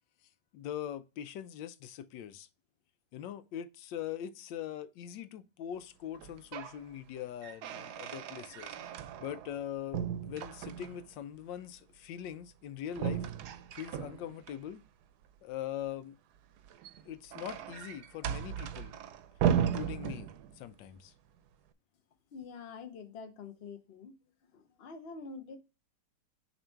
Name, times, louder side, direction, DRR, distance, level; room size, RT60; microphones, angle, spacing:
voice 1, 0.5-2.5 3.1-8.8 9.2-13.3 13.7-14.8 15.4-16.2 17.0-19.0 19.5-21.1, left 10 dB, 90° left, 1.3 m, -42 dB
sound 1, 6.1-6.8 7.2-9.6 9.9-11.1 12.9-14.6 16.6-20.7, right 9 dB, 70° right, 1.1 m, -36 dB
voice 2, 22.3-24.1 24.4-25.6, left 4 dB, 45° left, 0.9 m, -46 dB
7.1 x 3.0 x 4.4 m
omnidirectional pair, 1.9 m